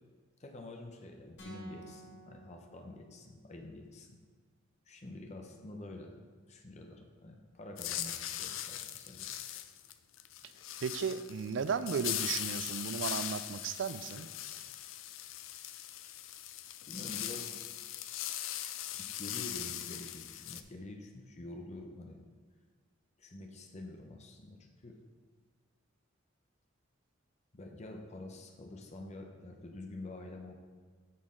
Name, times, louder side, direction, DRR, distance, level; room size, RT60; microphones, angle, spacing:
voice 1, 0.4-4.2 4.9-6.2 6.5-9.3 16.9-17.5 19.2-22.2 23.2-25.0 27.5-30.5, left 2 dB, 35° left, 2 dB, 0.8 m, -47 dB
sound 1, 1.4-3.5, right 2 dB, 60° left, 2.2 m, -53 dB
sound 2, 7.8-20.6, left 12 dB, 80° left, 0.4 m, -40 dB
voice 2, 10.8-14.3, right 6 dB, 65° right, 13 dB, 0.4 m, -35 dB
8.4 x 6.2 x 3.8 m, 1.5 s
head